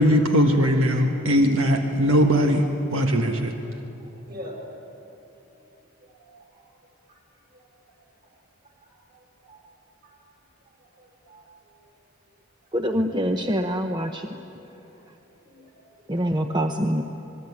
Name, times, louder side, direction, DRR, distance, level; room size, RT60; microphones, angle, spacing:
voice 1, 0.0-2.6 2.9-3.5, equal, 80° right, 3 dB, 1.6 m, -20 dB
voice 2, 4.0-4.9 5.5-5.8 6.0-6.4 7.1-7.2 7.5-7.6 8.8-9.6 10.0-10.2 10.8-11.8 14.8-15.0 15.4-16.4, equal, 45° right, 0 dB, 6.0 m, -45 dB
voice 3, 12.7-14.3 16.1-17.0, equal, 20° right, 5 dB, 0.8 m, -25 dB
26.5 x 20.5 x 9.8 m, 2.9 s
head